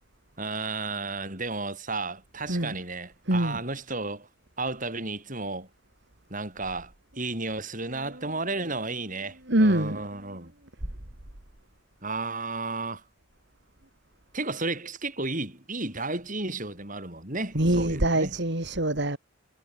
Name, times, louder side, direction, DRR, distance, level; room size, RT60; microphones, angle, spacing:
voice 1, 0.4-4.3 4.6-5.7 6.3-10.5 12.0-13.0 14.3-18.4, right 3 dB, 40° right, 7.5 m, -33 dB
voice 2, 3.3-3.6 9.5-10.0 17.5-19.2, right 1 dB, 55° right, 2.8 m, -24 dB
head